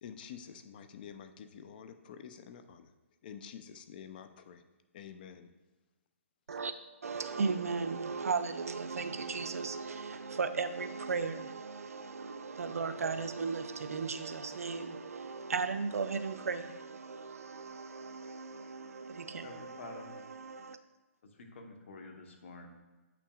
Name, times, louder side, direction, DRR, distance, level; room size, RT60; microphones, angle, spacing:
voice 1, 0.0-2.9 3.2-4.6 4.9-5.5, left 8 dB, 40° left, 0.5 m, -48 dB
voice 2, 7.0-20.8, right 4 dB, 90° right, 0.5 m, -36 dB
voice 3, 19.4-20.3 21.2-22.7, left 3 dB, 60° left, 1.1 m, -49 dB
8.0 x 5.9 x 2.4 m
hypercardioid pair, 155°, 8 cm